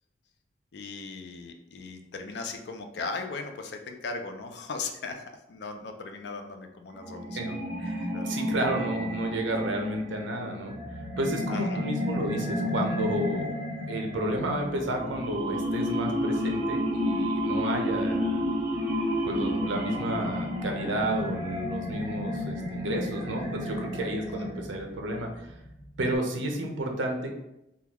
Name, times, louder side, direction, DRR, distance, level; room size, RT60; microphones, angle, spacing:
voice 1, 0.7-5.2 5.5-7.6 8.1-8.4 11.5-11.9 24.4-24.5, left 4 dB, 65° left, 5 dB, 0.4 m, -38 dB
sound 1, 7.0-24.9, equal, 25° right, 1.3 m, -31 dB
voice 2, 7.8-10.8 11.2-13.5 13.9-18.6 19.2-25.5 26.0-27.4, right 1 dB, 85° right, 2 dB, 0.6 m, -31 dB
sound 2, 14.1-26.2, equal, 5° right, 0.6 m, -50 dB
3.6 x 2.3 x 2.9 m, 0.87 s
head